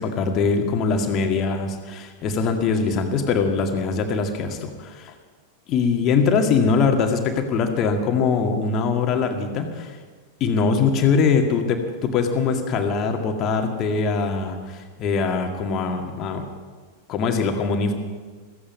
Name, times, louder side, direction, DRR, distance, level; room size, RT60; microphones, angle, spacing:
voice 1, 0.0-5.1 5.7-10.0 10.4-16.5 17.1-17.9, left 5 dB, 35° left, 4 dB, 2.0 m, -22 dB
16.0 x 15.0 x 5.4 m, 1.5 s
figure-of-eight pair, 90°, 0 cm